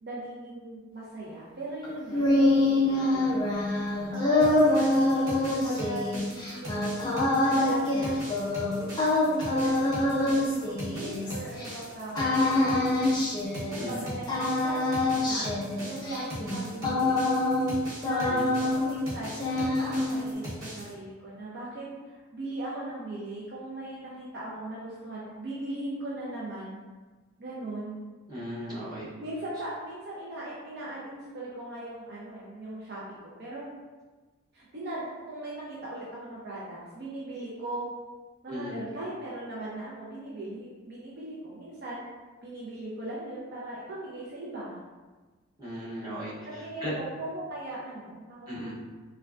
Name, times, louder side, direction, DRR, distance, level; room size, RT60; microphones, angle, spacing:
voice 1, 0.0-3.5 4.1-7.1 7.3-8.2 9.3-12.9 13.7-15.5 15.8-17.2 18.0-18.5 18.7-26.8 27.4-28.0 29.2-33.6 34.5-37.9 38.4-42.0 42.4-44.8 46.5-48.7, right 1 dB, 50° right, -6 dB, 0.4 m, -38 dB
sound 1, 1.8-11.7 12.1-14.0 14.3-17.8 18.0-19.1 19.3-20.3, left 2 dB, 20° left, 0.4 m, -26 dB
sound 2, 4.4-20.9, equal, 65° right, 1.3 m, -40 dB
voice 2, 18.3-18.6 28.3-29.1 38.5-38.8 45.6-46.3 46.8-46.9 48.5-48.7, equal, 20° right, -10 dB, 0.8 m, -36 dB
3.4 x 2.2 x 2.4 m, 1.3 s
head